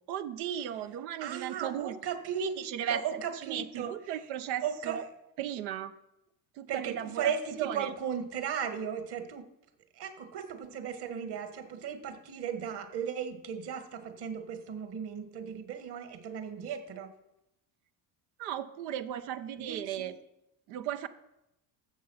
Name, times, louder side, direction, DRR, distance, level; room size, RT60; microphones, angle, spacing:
voice 1, 0.0-2.0 2.4-5.0 5.4-5.9 6.6-7.3 7.6-7.9 18.4-20.1 20.7-21.1, right 10 dB, 85° right, 10 dB, 0.9 m, -36 dB
voice 2, 1.2-3.9 4.6-5.0 6.7-9.4 10.0-17.1 19.6-20.1, right 7 dB, 50° right, 8 dB, 1.9 m, -36 dB
14.5 x 6.8 x 5.7 m, 0.88 s
supercardioid pair, 95°, 49 cm